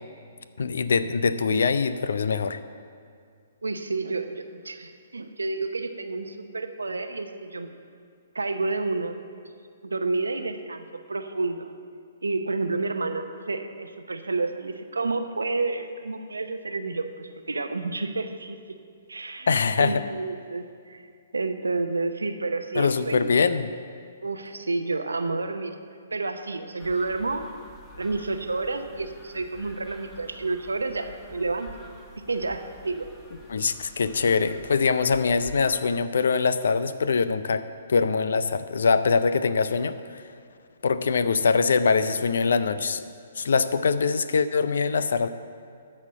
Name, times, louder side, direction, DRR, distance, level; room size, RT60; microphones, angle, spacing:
voice 1, 0.6-2.6 19.5-20.0 22.7-23.7 33.5-37.6 37.9-40.3 40.8-43.0 43.4-45.3, left 5 dB, 70° left, 13 dB, 0.5 m, -23 dB
voice 2, 3.6-7.7 8.3-9.2 9.8-11.7 12.2-18.6 19.1-19.5 19.8-21.1 21.3-23.3 24.2-25.7 26.1-27.5 28.0-31.7 32.2-33.1, right 3 dB, 85° right, 8 dB, 0.8 m, -30 dB
sound 1, 26.8-35.9, left 1 dB, 10° left, 1.2 m, -48 dB
13.0 x 4.3 x 7.6 m, 2.3 s
hypercardioid pair, 130°, 0 cm